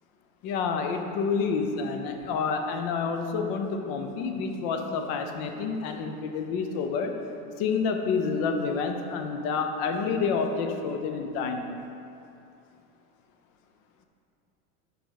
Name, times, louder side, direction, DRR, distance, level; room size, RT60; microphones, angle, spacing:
voice 1, 0.4-7.2 7.6-11.7, left 5 dB, 40° left, 5 dB, 0.6 m, -28 dB
5.7 x 4.9 x 5.7 m, 2.6 s
supercardioid pair, 155°, 46 cm